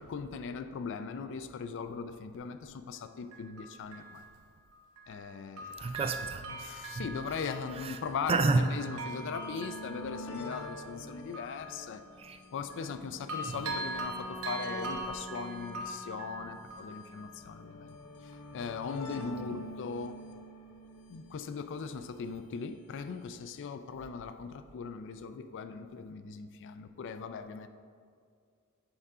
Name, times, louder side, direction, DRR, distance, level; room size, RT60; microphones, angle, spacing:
voice 1, 0.0-4.2 5.1-5.7 6.4-12.0 12.5-18.0 18.5-20.2 21.1-27.7, left 5 dB, 55° left, 0.4 m, -39 dB
Bell, 2.3-2.4 3.3-5.3 5.6-13.0 13.3-17.9 18.3-18.4, right 2 dB, 75° right, 0.8 m, -43 dB
voice 2, 5.8-6.4 7.0-7.1 8.3-8.7 12.2-12.4 13.5-13.6, right 3 dB, 25° right, 0.3 m, -28 dB
sound 1, 5.9-6.0 6.2-6.3 7.1-22.4 23.3-23.4 23.6-23.7, left 1 dB, 80° left, 0.7 m, -47 dB
8.0 x 3.6 x 4.9 m
head